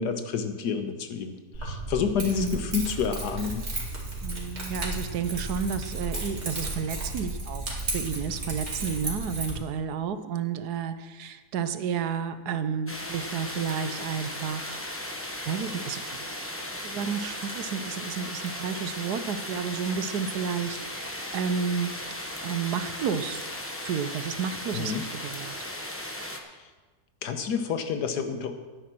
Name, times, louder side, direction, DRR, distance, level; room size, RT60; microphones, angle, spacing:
voice 1, 0.0-1.3 1.6-3.6 24.7-25.0 27.2-28.5, left 6 dB, 85° left, 7 dB, 1.6 m, -29 dB
Keys jangling, 1.5-9.5, right 2 dB, 40° right, 2.6 m, -34 dB
voice 2, 2.3-2.7 4.2-7.6 7.9-14.8 15.5-16.2 16.6-21.9 22.4-23.4 23.8-25.5, right 6 dB, 80° right, 11 dB, 1.3 m, -31 dB
sound 1, 12.9-26.4, left 1 dB, 10° left, 0.9 m, -36 dB
10.5 x 10.0 x 6.1 m, 1.3 s
omnidirectional pair, 1.7 m